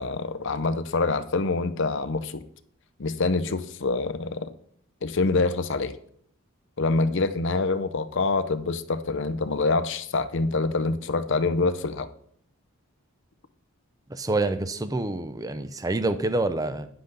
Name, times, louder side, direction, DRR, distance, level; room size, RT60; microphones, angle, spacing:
voice 1, 0.0-2.4 3.0-4.5 5.0-6.0 6.8-12.1, left 3 dB, 55° left, 13 dB, 0.6 m, -26 dB
voice 2, 14.1-16.9, right 2 dB, 15° right, 11 dB, 0.5 m, -27 dB
10.0 x 7.7 x 3.9 m, 0.65 s
head